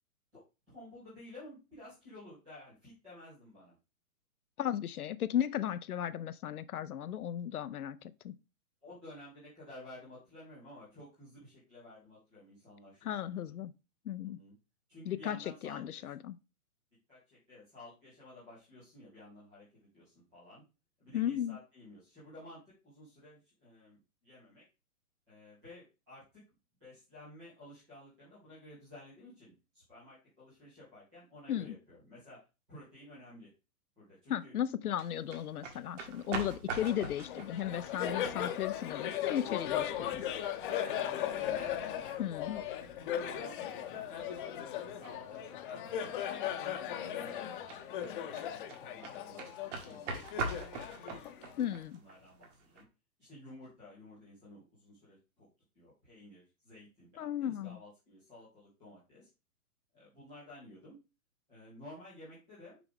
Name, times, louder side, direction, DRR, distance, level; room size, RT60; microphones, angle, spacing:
voice 1, 0.7-3.7 8.8-13.5 14.2-14.5 14.9-16.0 17.1-20.6 21.0-24.6 25.3-26.4 26.8-32.4 32.7-33.5 34.0-34.5 40.8-42.2 42.5-46.1 46.4-47.5 47.8-50.7 51.0-51.2 51.9-52.8 53.2-55.5 55.7-59.3 59.9-61.0 61.5-62.8, left 1 dB, ahead, 0.3 m, -53 dB
voice 2, 4.6-8.3 13.0-13.7 14.1-14.4 15.1-15.4 15.6-16.4 21.1-21.6 31.5-31.7 34.3-40.2 42.2-42.6 51.6-52.0 57.2-57.8, left 10 dB, 85° left, 0.7 m, -35 dB
sound 1, 34.9-52.8, right 4 dB, 55° right, 2.0 m, -45 dB
Laughter, 36.8-51.8, left 10 dB, 35° left, 0.8 m, -38 dB
5.9 x 4.7 x 3.5 m
hypercardioid pair, 140°, 43 cm